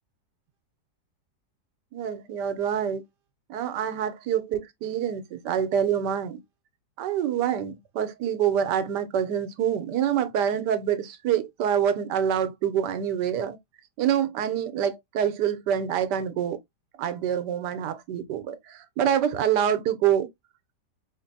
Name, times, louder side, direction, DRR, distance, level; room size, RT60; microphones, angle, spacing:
voice 1, 1.9-3.0 3.5-6.4 7.0-13.6 14.0-16.6 17.0-20.3, right 9 dB, 85° right, 1.3 m, -26 dB
4.8 x 2.5 x 2.7 m
omnidirectional pair, 1.8 m